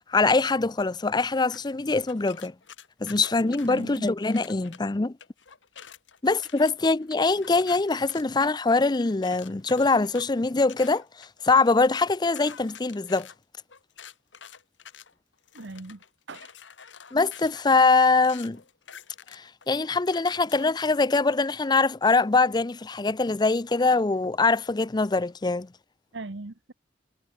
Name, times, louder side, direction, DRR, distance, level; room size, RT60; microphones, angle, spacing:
voice 1, 0.1-2.5 3.0-5.1 6.2-13.3 17.1-18.6 19.3-25.7, left 3 dB, 25° left, 0.5 m, -23 dB
sound 1, 1.5-4.8 5.2-20.8, left 8 dB, 85° left, 2.2 m, -48 dB
voice 2, 3.7-4.1 15.5-16.0 16.3-16.5 26.1-26.7, right 2 dB, 75° right, 1.2 m, -39 dB
head